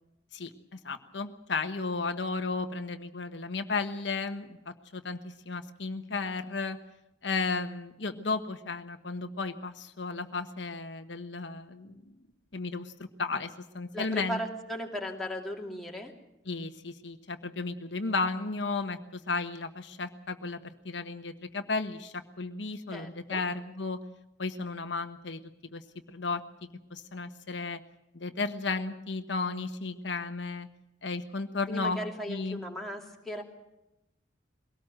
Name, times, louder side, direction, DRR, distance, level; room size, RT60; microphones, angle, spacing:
voice 1, 0.3-6.8 7.2-12.1 12.5-14.4 16.5-24.0 24.4-25.4 25.7-25.8 26.1-26.4 26.9-27.8 28.1-30.7 31.0-32.0 32.3-32.6, left 3 dB, 70° left, 7 dB, 1.2 m, -34 dB
voice 2, 13.9-16.1 22.9-23.4 31.7-33.4, equal, ahead, -1 dB, 2.7 m, -37 dB
22.5 x 18.0 x 7.7 m, 0.91 s
head